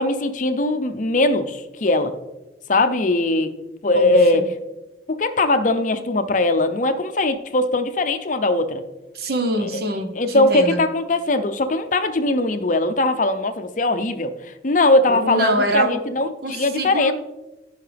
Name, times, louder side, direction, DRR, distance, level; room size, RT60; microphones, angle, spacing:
voice 1, 0.0-2.2 2.7-3.5 3.8-4.4 5.1-8.8 9.6-9.8 10.2-17.1, left 2 dB, 45° left, 9 dB, 0.6 m, -20 dB
voice 2, 9.1-10.8 15.1-16.0 16.4-17.1, right 1 dB, 60° right, 7 dB, 1.0 m, -24 dB
14.0 x 5.6 x 3.4 m, 1.0 s
head